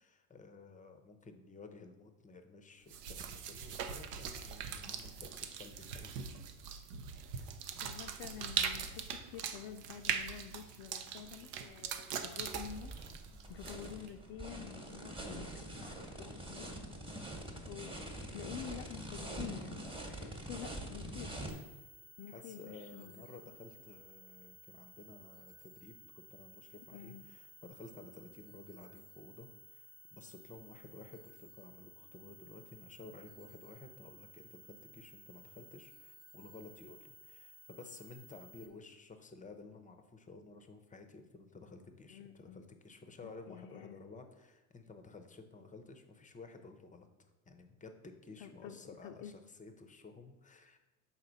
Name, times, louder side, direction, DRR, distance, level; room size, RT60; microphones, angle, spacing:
voice 1, 0.0-6.3 13.2-13.5 20.2-20.7 22.3-50.8, left 3 dB, 15° left, 7 dB, 0.6 m, -54 dB
sound 1, 2.9-14.1, right 7 dB, 85° right, 0.7 m, -41 dB
voice 2, 7.8-12.9 13.5-16.7 17.6-18.0 18.3-21.4 22.2-23.2 26.9-27.2 42.1-42.7 43.2-44.0 48.4-49.3, left 9 dB, 55° left, 4 dB, 0.5 m, -49 dB
sound 2, 12.4-21.5, right 1 dB, 10° right, 1.1 m, -45 dB
sound 3, 21.5-38.7, right 1 dB, 30° right, 0.7 m, -57 dB
5.8 x 4.1 x 3.9 m, 1.1 s
hypercardioid pair, 75°, 46 cm